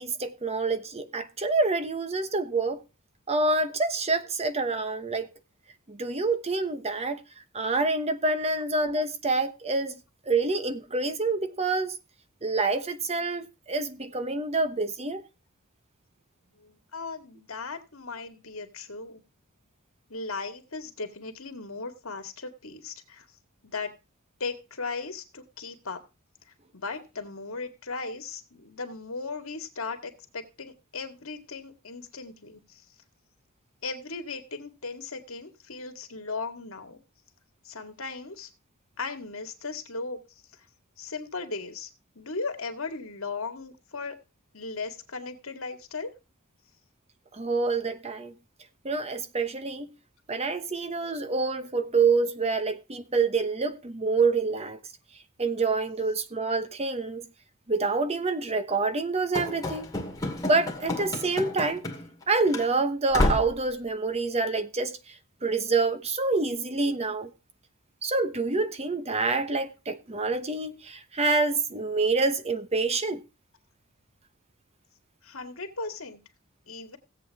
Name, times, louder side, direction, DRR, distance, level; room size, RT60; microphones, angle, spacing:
voice 1, 0.0-2.8 3.3-5.3 5.9-7.2 7.5-9.9 10.3-12.0 12.4-15.2 47.3-48.3 48.8-49.9 50.3-54.8 55.4-57.3 57.7-59.9 60.4-61.8 62.3-67.3 68.0-73.2, right 3 dB, 30° right, 1.0 m, -27 dB
voice 2, 16.6-19.2 20.1-23.3 23.6-23.9 24.4-26.0 26.7-32.8 33.8-37.0 37.7-38.5 39.0-40.2 41.0-41.9 42.2-44.2 44.5-46.1 75.2-76.2 76.7-77.0, left 4 dB, 70° left, 2.1 m, -37 dB
Run / Slam, 59.3-62.2 62.5-62.7 63.1-63.6, left 1 dB, 15° left, 2.3 m, -30 dB
16.5 x 8.1 x 3.6 m
head